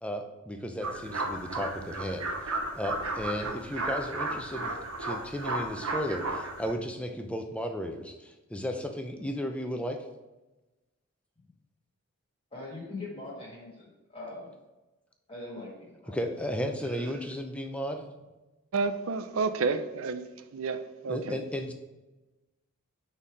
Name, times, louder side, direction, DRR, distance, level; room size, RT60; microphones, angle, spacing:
voice 1, 0.0-2.3 2.7-10.0 16.1-18.1 21.0-21.7, equal, 5° left, 4 dB, 0.6 m, -34 dB
sound 1, 0.8-6.7, right 2 dB, 85° right, 1.0 m, -34 dB
voice 2, 12.5-14.5 15.3-16.2 16.9-17.1, left 2 dB, 25° left, -4 dB, 1.7 m, -42 dB
voice 3, 18.7-20.2 20.5-21.4, right 4 dB, 70° right, 10 dB, 0.5 m, -30 dB
5.6 x 4.3 x 4.8 m, 1.1 s
head